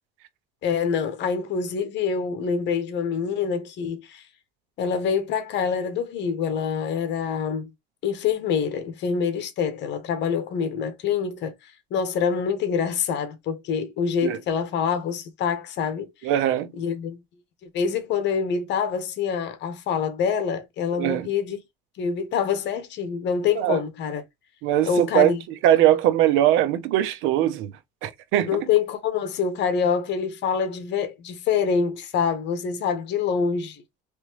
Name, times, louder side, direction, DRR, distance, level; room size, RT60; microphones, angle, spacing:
voice 1, 0.6-4.2 4.8-7.7 8.0-11.5 11.9-16.1 16.8-17.2 17.7-21.6 22.0-24.2 24.8-25.4 28.5-33.8, left 6 dB, 60° left, 1.4 m, -25 dB
voice 2, 16.2-16.7 21.0-21.3 23.6-23.8 24.6-25.3 25.6-27.7 28.0-28.7, right 12 dB, 75° right, 1.0 m, -21 dB
4.2 x 3.4 x 3.2 m
cardioid pair, 120°, 21 cm